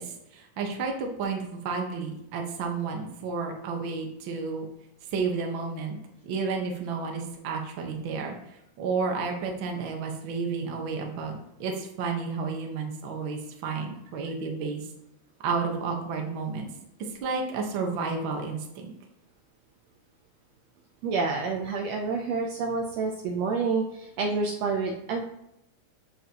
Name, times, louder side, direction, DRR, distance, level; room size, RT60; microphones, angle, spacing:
voice 1, 0.0-4.7 5.1-6.0 6.2-8.3 8.8-14.9 15.4-16.7 17.2-18.9, right 4 dB, 65° right, 2 dB, 1.2 m, -31 dB
voice 2, 21.0-25.2, right 4 dB, 85° right, 1 dB, 1.4 m, -28 dB
7.9 x 7.5 x 2.9 m, 0.84 s
omnidirectional pair, 3.8 m